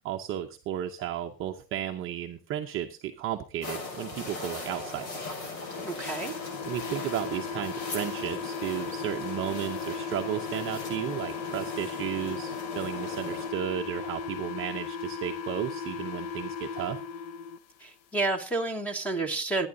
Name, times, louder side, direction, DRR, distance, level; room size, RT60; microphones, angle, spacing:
voice 1, 0.0-5.3 6.7-17.0, right 11 dB, 25° right, 0.7 m, -34 dB
sound 1, 3.6-13.5, left 3 dB, 70° left, 6.7 m, -39 dB
sound 2, 5.5-17.6, left 6 dB, 45° left, 0.8 m, -37 dB
voice 2, 5.8-6.3 17.8-19.7, right 3 dB, 5° left, 1.2 m, -30 dB
25.5 x 9.7 x 2.6 m
supercardioid pair, 155°, 49 cm